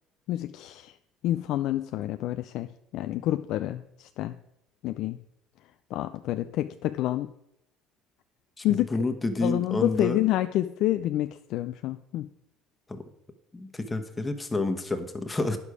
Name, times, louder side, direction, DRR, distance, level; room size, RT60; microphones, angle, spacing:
voice 1, 0.3-1.0 1.2-4.4 4.8-5.2 5.9-7.3 8.6-8.9 9.4-12.3, left 14 dB, 65° left, 10 dB, 0.4 m, -28 dB
voice 2, 8.6-10.2 12.9-13.0 13.5-15.6, left 2 dB, 20° left, 7 dB, 1.3 m, -29 dB
9.7 x 6.9 x 4.8 m, 0.81 s
hypercardioid pair, 70°, 0 cm